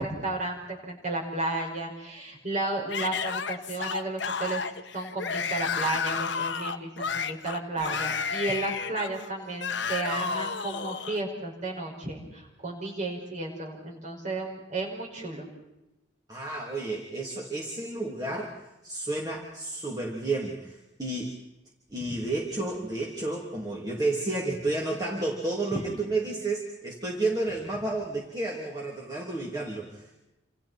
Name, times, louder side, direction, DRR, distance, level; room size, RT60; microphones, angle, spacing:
voice 1, 0.0-4.6 4.9-15.5 22.1-22.2 25.7-26.0, right 2 dB, 40° right, -1 dB, 5.9 m, -33 dB
Yell / Screaming, 2.9-11.2, left 6 dB, 65° left, 1.3 m, -32 dB
voice 2, 16.3-18.5 18.8-21.3 21.9-30.2, right 2 dB, 20° right, -3 dB, 3.0 m, -31 dB
29.0 x 27.5 x 4.5 m, 0.95 s
head